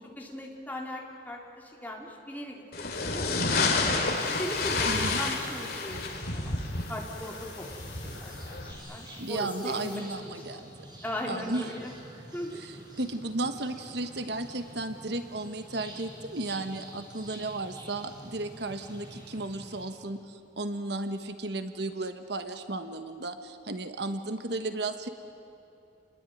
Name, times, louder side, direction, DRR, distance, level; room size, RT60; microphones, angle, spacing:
voice 1, 0.0-6.6 6.9-8.6 8.9-10.6 11.0-11.9 12.3-12.6, left 1 dB, 10° left, -1 dB, 3.5 m, -39 dB
sound 1, 2.7-8.7, left 3 dB, 55° left, 3.3 m, -30 dB
sound 2, 3.9-10.0, left 4 dB, 25° left, 5.6 m, -51 dB
voice 2, 4.8-5.2 9.2-10.7 11.3-11.6 12.5-25.1, right 2 dB, 65° right, 8 dB, 1.3 m, -34 dB
sound 3, 7.6-19.9, equal, 25° right, 5.6 m, -48 dB
29.0 x 21.0 x 9.4 m, 2.9 s
head